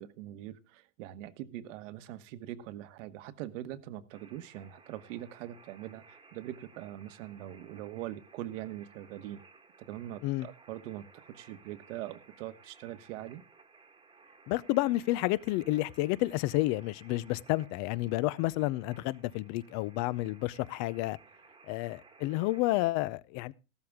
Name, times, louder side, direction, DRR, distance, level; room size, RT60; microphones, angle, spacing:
voice 1, 0.0-9.4 9.8-13.4, right 13 dB, 60° right, 1.3 m, -42 dB
sound 1, 4.1-22.9, right 4 dB, 10° right, 1.4 m, -58 dB
voice 2, 14.5-21.2 21.7-23.5, left 18 dB, 40° left, 0.6 m, -30 dB
14.5 x 13.0 x 3.6 m
supercardioid pair, 130°, 41 cm